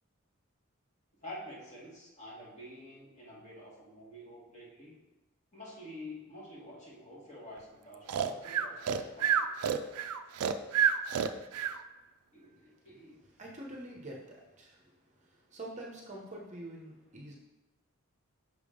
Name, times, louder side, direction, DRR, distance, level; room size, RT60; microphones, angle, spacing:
voice 1, 1.2-4.9 5.5-9.5 12.3-13.2, left 1 dB, 30° left, -5 dB, 1.6 m, -48 dB
Breathing, 8.1-11.8, right 8 dB, 85° right, 0.4 m, -29 dB
voice 2, 13.4-14.8 15.5-17.4, right 1 dB, 30° right, -1 dB, 0.7 m, -45 dB
6.0 x 3.5 x 5.0 m, 1.1 s
head